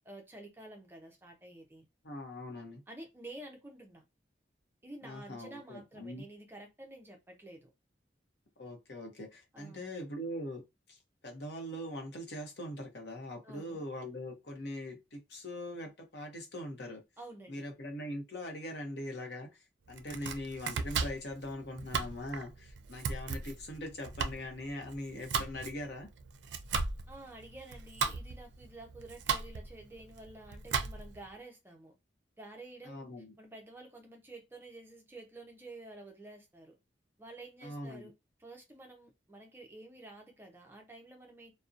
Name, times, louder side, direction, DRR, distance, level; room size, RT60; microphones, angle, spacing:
voice 1, 0.0-1.9 2.9-4.0 4.8-7.7 9.5-9.9 13.4-13.8 17.2-17.6 27.1-31.9 32.4-33.1 33.4-36.8 37.2-38.1 38.4-41.5, right 2 dB, 10° right, 0.4 m, -50 dB
voice 2, 2.0-2.8 5.0-6.2 8.6-10.6 10.9-11.0 11.2-17.0 17.5-26.1 32.8-33.3 37.6-38.1, left 1 dB, 65° left, 0.7 m, -42 dB
Domestic sounds home sounds, 19.9-31.3, right 5 dB, 75° right, 0.4 m, -37 dB
2.5 x 2.0 x 2.4 m
head